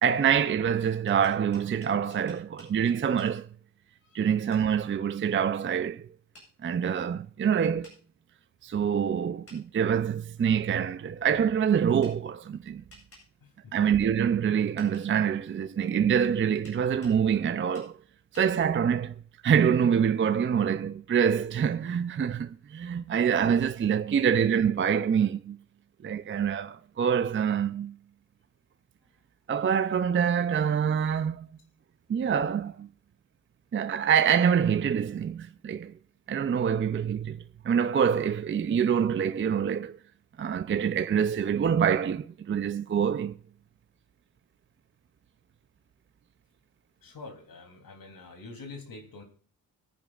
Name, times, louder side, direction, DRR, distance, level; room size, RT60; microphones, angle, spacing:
voice 1, 0.0-3.5 4.1-6.1 6.6-7.9 8.6-12.8 13.7-18.0 18.3-19.1 19.4-25.6 26.0-28.0 29.5-31.5 32.1-32.9 33.7-35.9 36.3-40.0 40.4-43.4, right 8 dB, 35° right, 0.4 m, -26 dB
sound 1, 1.1-2.7 3.2-3.3 4.5-4.7 6.3-6.5 7.8-8.0 9.5-9.6 12.0-12.2 12.9-13.3 14.8-15.1 16.6-17.2 17.7-17.9 18.3-18.5, left 1 dB, 40° left, 7.9 m, -53 dB
voice 2, 13.4-13.9 47.0-49.2, left 3 dB, 70° left, 3.1 m, -46 dB
24.5 x 10.0 x 2.4 m
wide cardioid pair, 180°, 36 cm